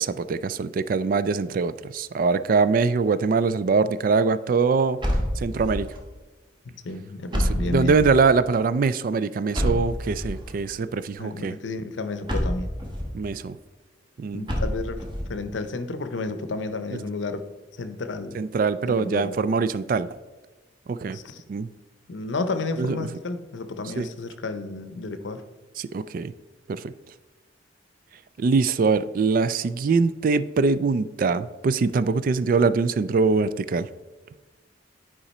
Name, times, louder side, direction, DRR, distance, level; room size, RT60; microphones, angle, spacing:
voice 1, 0.0-5.0 5.4-5.9 7.3-11.5 13.1-13.6 14.2-14.4 18.3-20.1 20.9-21.2 21.5-21.7 22.8-23.0 24.0-24.1 25.8-26.3 26.7-26.9 28.4-33.9, right 4 dB, 50° right, 15 dB, 0.3 m, -23 dB
sound 1, 5.0-6.0 7.3-8.3 9.5-10.5 12.3-13.1 14.5-15.3, equal, 25° right, 1.2 m, -27 dB
voice 2, 6.6-8.0 11.2-12.7 14.3-15.0 15.3-17.5 17.8-18.4 18.9-19.4 21.1-21.4 22.1-25.4, left 3 dB, 90° left, 10 dB, 0.7 m, -31 dB
10.0 x 4.9 x 4.2 m, 1.2 s
head